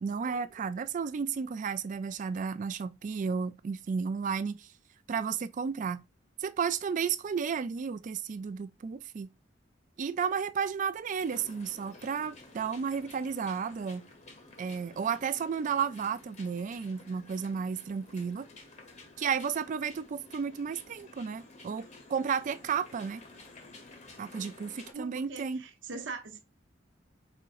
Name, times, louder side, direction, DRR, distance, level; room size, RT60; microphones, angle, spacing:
voice 1, 0.0-4.7 5.1-6.0 6.4-9.3 10.0-14.0 14.6-18.5 19.2-23.2 24.2-25.6, right 6 dB, 40° right, 0.3 m, -33 dB
sound 1, 11.2-24.9, left 2 dB, 40° left, 0.9 m, -53 dB
voice 2, 24.9-26.4, right 4 dB, 70° right, 0.7 m, -41 dB
4.4 x 3.6 x 2.5 m
head